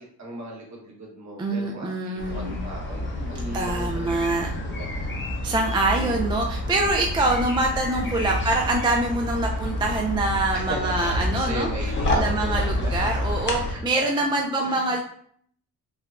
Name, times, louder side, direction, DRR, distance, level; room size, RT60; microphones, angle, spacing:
voice 1, 0.0-4.1 4.7-4.9 6.0-6.3 8.0-8.4 10.5-12.9 13.7-14.2 14.6-15.0, right 1 dB, 50° right, -1 dB, 1.2 m, -36 dB
voice 2, 1.4-2.6 3.5-4.5 5.4-11.7 12.2-15.0, right 2 dB, 15° right, 1 dB, 0.3 m, -25 dB
sound 1, 2.2-13.7, left 1 dB, 30° left, 0.8 m, -28 dB
4.5 x 2.2 x 2.5 m, 0.62 s
cardioid pair, 95°, 37 cm